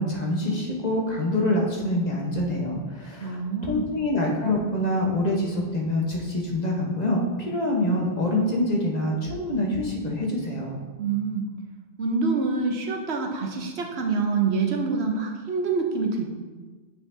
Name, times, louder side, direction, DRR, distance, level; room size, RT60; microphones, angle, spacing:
voice 1, 0.0-10.8, left 1 dB, 40° left, -1 dB, 1.2 m, -26 dB
voice 2, 3.2-3.9 11.0-11.5 12.0-16.3, right 4 dB, 70° right, 2 dB, 1.1 m, -26 dB
8.4 x 5.8 x 2.7 m, 1.4 s
omnidirectional pair, 1.1 m